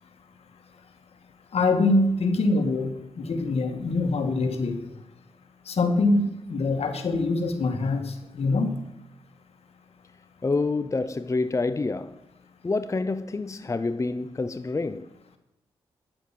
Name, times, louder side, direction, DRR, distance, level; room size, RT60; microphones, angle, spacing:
voice 1, 1.5-4.8 5.7-8.7, left 2 dB, 70° left, 1.9 m, -24 dB
voice 2, 10.4-12.2 12.6-15.1, left 3 dB, 30° left, 0.6 m, -27 dB
10.5 x 8.9 x 7.6 m
cardioid pair, 55°, 11 cm